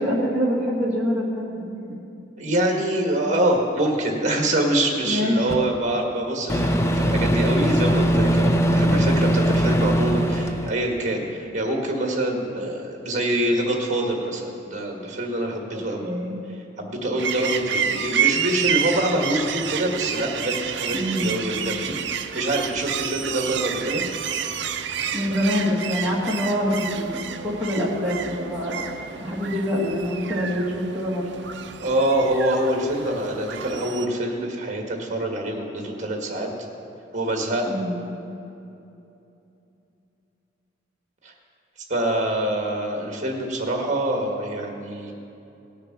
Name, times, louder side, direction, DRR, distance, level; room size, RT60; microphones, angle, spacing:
voice 1, 0.0-1.7 5.1-5.5 8.6-9.1 16.0-16.4 20.9-21.3 25.1-28.8 29.2-31.3 37.6-38.0, equal, 10° right, -8 dB, 1.9 m, -25 dB
voice 2, 2.4-16.1 16.5-24.0 31.8-36.5 37.1-37.6 41.2-41.3 41.9-45.1, right 1 dB, 35° right, 1 dB, 1.8 m, -25 dB
Microwave oven, 5.5-5.6 6.5-10.8, equal, 15° left, 0.6 m, -20 dB
sound 1, 17.2-34.1, right 8 dB, 60° right, 0.6 m, -29 dB
18.0 x 6.7 x 6.0 m, 2.8 s
head